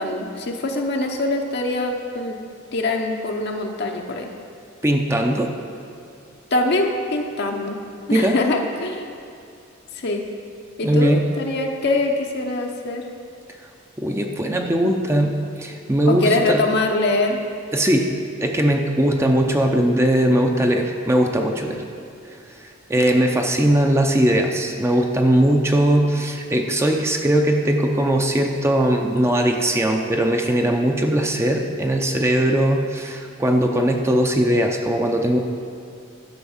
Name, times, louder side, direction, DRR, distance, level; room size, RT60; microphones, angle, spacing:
voice 1, 0.0-2.4 2.7-4.3 6.5-7.8 8.1-9.1 9.9-10.3 10.8-13.1 16.1-17.4, left 2 dB, 55° left, 2 dB, 0.7 m, -23 dB
voice 2, 4.8-5.5 8.1-8.4 10.8-11.2 14.0-16.6 17.7-18.1 18.4-21.8 22.5-35.4, right 1 dB, 15° right, 3 dB, 0.6 m, -19 dB
12.0 x 5.3 x 7.1 m, 2.4 s
head